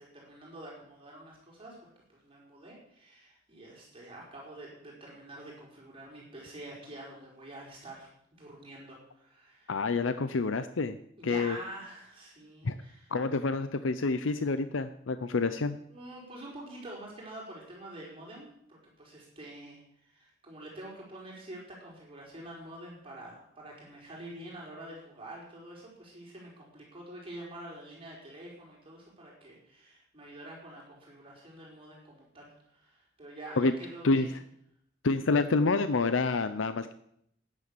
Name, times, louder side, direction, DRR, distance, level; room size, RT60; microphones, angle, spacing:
voice 1, 0.0-9.7 11.2-13.1 15.9-34.3, right 1 dB, 30° right, -3 dB, 4.9 m, -47 dB
voice 2, 9.7-11.0 11.2-11.6 12.6-12.8 13.1-15.8 33.6-33.7 34.0-34.3 35.0-36.9, left 3 dB, 85° left, 11 dB, 0.7 m, -28 dB
13.5 x 9.9 x 6.8 m, 0.72 s
head